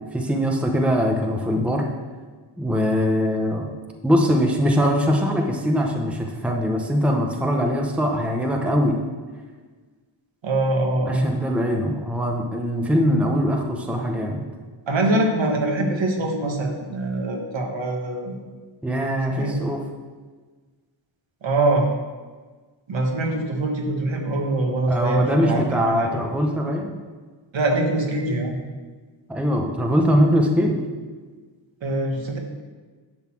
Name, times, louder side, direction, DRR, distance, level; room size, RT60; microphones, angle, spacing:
voice 1, 0.0-1.8 2.6-3.7 4.0-9.0 11.1-14.4 18.8-19.8 24.9-26.9 29.3-30.8, equal, 5° right, 1 dB, 0.8 m, -22 dB
voice 2, 10.4-11.3 14.9-18.3 19.3-19.7 21.4-21.9 22.9-26.1 27.5-28.6 31.8-32.4, right 2 dB, 65° right, 1 dB, 1.6 m, -23 dB
10.5 x 4.0 x 7.6 m, 1.4 s
wide cardioid pair, 160°, 48 cm